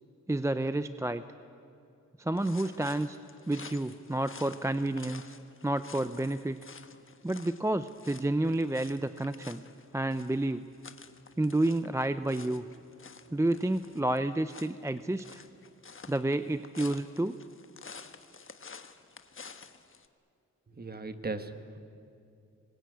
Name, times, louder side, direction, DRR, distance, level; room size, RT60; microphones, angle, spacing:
voice 1, 0.3-1.2 2.2-3.2 3.5-5.3 5.6-6.6 7.2-9.6 9.9-10.6 11.4-12.6 13.3-15.4 16.1-17.4, right 1 dB, 10° right, 11 dB, 0.6 m, -30 dB
sound 1, 2.4-20.1, left 5 dB, 45° left, 1.3 m, -51 dB
voice 2, 20.7-21.8, right 3 dB, 30° right, 9 dB, 1.6 m, -38 dB
25.5 x 21.0 x 9.5 m, 2.5 s
wide cardioid pair, 100°, 30 cm